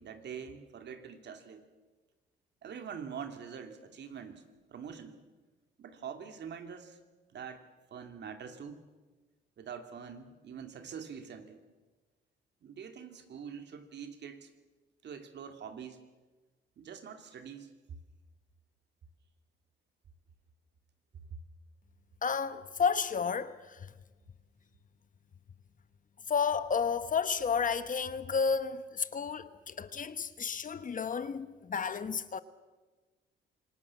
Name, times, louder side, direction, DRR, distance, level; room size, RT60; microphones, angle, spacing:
voice 1, 0.0-1.7 2.6-4.4 4.7-5.2 5.8-7.0 7.3-7.7 7.9-8.8 9.6-11.6 12.6-14.5 15.0-16.1 16.8-17.7, right 7 dB, 60° right, 2.8 m, -44 dB
voice 2, 22.2-23.9 26.3-32.4, left 6 dB, 40° left, 1.2 m, -32 dB
26.5 x 19.5 x 7.3 m
cardioid pair, 90°, 20 cm